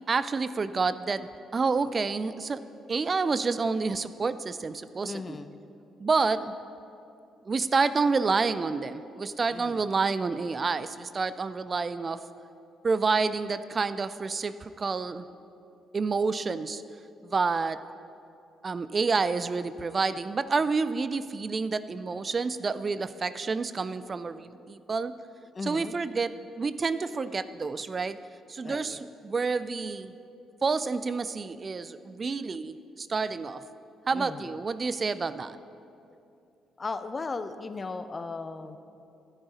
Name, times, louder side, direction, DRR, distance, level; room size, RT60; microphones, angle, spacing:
voice 1, 0.1-2.6 2.9-5.4 6.0-6.5 7.5-12.2 12.8-15.3 15.9-16.8 17.2-17.8 18.6-25.1 25.6-28.2 28.5-30.1 30.6-33.6 34.1-35.6, right 4 dB, 40° right, 14 dB, 0.3 m, -29 dB
voice 2, 5.0-5.6 9.5-9.8 25.5-26.0 28.6-29.0 34.1-34.5 36.8-38.8, left 3 dB, 35° left, 11 dB, 0.6 m, -37 dB
13.0 x 8.0 x 4.2 m, 2.7 s
figure-of-eight pair, 45°, 0 cm